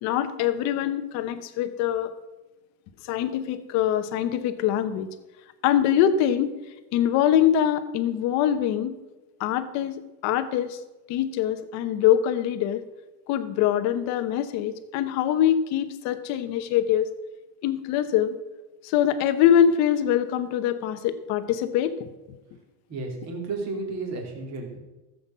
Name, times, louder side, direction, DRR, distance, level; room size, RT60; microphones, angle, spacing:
voice 1, 0.0-2.1 3.0-5.1 5.6-6.5 6.9-9.0 9.4-10.8 11.1-12.8 13.3-17.1 17.6-18.4 18.8-22.1, left 10 dB, 35° left, 10 dB, 0.9 m, -23 dB
voice 2, 22.9-24.8, right 3 dB, 30° right, 1 dB, 2.8 m, -32 dB
14.5 x 7.8 x 5.6 m, 1.1 s
supercardioid pair, 165°, 49 cm